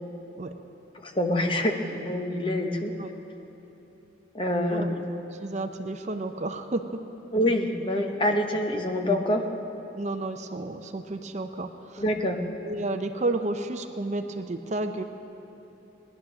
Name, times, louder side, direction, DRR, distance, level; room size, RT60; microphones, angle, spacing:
voice 1, 1.0-2.9 4.3-5.0 7.3-9.4 12.0-12.4, left 1 dB, 25° left, 3 dB, 1.1 m, -26 dB
voice 2, 5.3-7.0 9.9-12.0 12.6-15.0, right 2 dB, 40° right, 7 dB, 0.6 m, -31 dB
19.0 x 11.0 x 6.2 m, 3.0 s
head